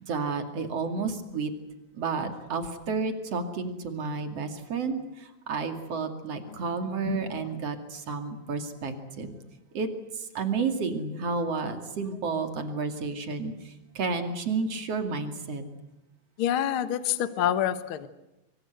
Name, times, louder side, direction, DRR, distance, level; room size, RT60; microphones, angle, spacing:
voice 1, 0.1-1.5 1.9-9.3 9.7-9.9 10.3-13.5 13.9-15.6, right 4 dB, 45° right, 6 dB, 3.1 m, -31 dB
voice 2, 6.5-7.6 16.4-18.1, left 10 dB, 60° left, 11 dB, 1.4 m, -29 dB
25.0 x 24.5 x 8.1 m, 0.89 s
omnidirectional pair, 4.2 m